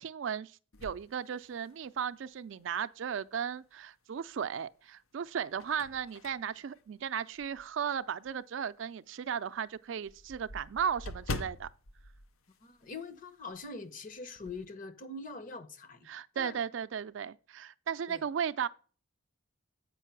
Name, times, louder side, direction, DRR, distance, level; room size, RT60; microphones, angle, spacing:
voice 1, 0.0-11.7 16.1-18.7, right 7 dB, 65° right, 0.4 m, -36 dB
sound 1, 0.7-2.1 2.6-2.7 4.2-4.7 5.2-7.8 8.2-8.4 8.7-8.8 9.1-9.2 9.5-13.3 13.5-13.7 14.1-14.7, left 2 dB, 85° left, 0.7 m, -44 dB
voice 2, 12.6-16.1 16.3-16.6 18.1-18.2, left 3 dB, 40° left, 1.0 m, -43 dB
8.2 x 5.4 x 5.8 m
head